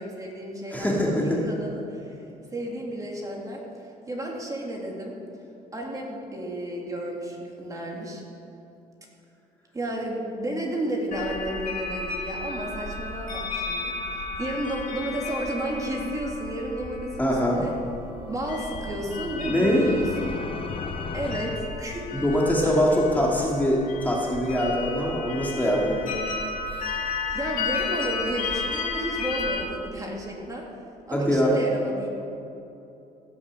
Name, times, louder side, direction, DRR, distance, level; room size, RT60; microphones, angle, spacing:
voice 1, 0.0-2.2 2.5-5.1 5.7-8.2 9.7-17.7 18.2-20.4 21.1-22.2 22.6-22.8 23.4-23.5 27.3-30.7 31.1-32.1, right 1 dB, 20° right, -1 dB, 2.6 m, -32 dB
voice 2, 0.7-1.4 17.2-17.6 19.5-19.9 22.1-26.1 31.1-31.5, equal, 10° left, -3 dB, 2.3 m, -23 dB
sound 1, 11.1-29.6, left 4 dB, 55° left, 2.4 m, -33 dB
sound 2, 18.0-22.5, left 5 dB, 30° left, 0.7 m, -38 dB
17.0 x 7.2 x 7.6 m, 2.8 s
cardioid pair, 110°, 17 cm